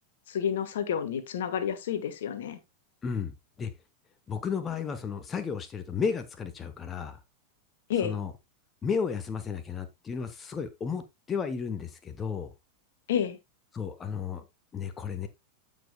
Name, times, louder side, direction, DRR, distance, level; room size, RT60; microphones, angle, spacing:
voice 1, 0.3-2.6 7.9-8.1 13.1-13.4, left 8 dB, 60° left, 1.3 m, -30 dB
voice 2, 3.0-3.7 4.3-7.2 8.0-8.3 8.8-12.5 13.7-14.4 14.7-15.3, left 6 dB, 20° left, 1.0 m, -33 dB
15.0 x 5.3 x 2.2 m
figure-of-eight pair, 90°, 0 cm